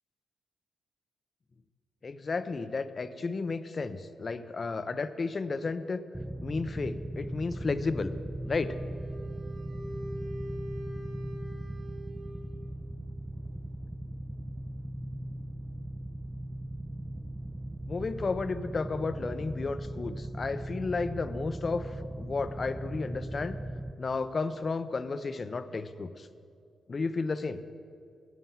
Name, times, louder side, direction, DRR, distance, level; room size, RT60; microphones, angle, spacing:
voice 1, 2.0-6.0 6.4-8.1 8.5-8.8 17.9-23.6 24.0-26.3 26.9-27.6, left 4 dB, 45° left, 12 dB, 0.6 m, -33 dB
sound 1, 6.1-23.9, right 1 dB, 10° right, 0.6 m, -38 dB
Wind instrument woodwind instrument, 8.4-12.7, equal, 60° right, 2.2 m, -44 dB
9.4 x 9.3 x 7.2 m, 2.4 s
supercardioid pair, 50°, 0 cm